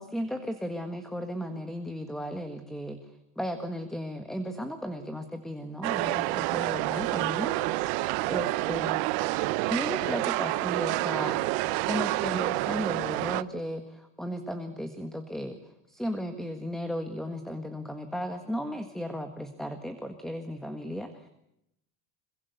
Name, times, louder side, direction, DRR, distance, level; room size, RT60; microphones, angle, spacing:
voice 1, 0.0-9.0 9.7-11.4 11.8-21.3, equal, ahead, 7 dB, 1.7 m, -35 dB
sound 1, 5.8-13.4, right 20 dB, 85° right, 1.0 m, -28 dB
26.0 x 23.0 x 8.2 m, 0.82 s
cardioid pair, 160°, 36 cm